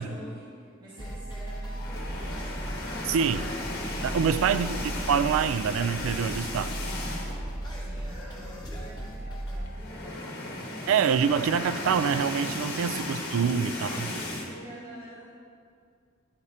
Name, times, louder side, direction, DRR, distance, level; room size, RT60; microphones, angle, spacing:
voice 1, 0.0-2.5 4.6-5.0 7.8-11.3 13.7-14.1 14.4-15.3, right 1 dB, 20° right, -9 dB, 1.4 m, -47 dB
sound 1, 1.0-9.6, right 1 dB, 20° left, 1.4 m, -36 dB
sound 2, 1.7-7.5 7.9-8.1 8.3-8.4 9.5-14.5, left 2 dB, 50° left, 1.3 m, -35 dB
voice 2, 3.0-3.5 4.0-4.8 5.1-6.8 10.9-13.9, right 7 dB, 70° right, 14 dB, 0.3 m, -25 dB
10.5 x 4.9 x 4.2 m, 2.3 s
head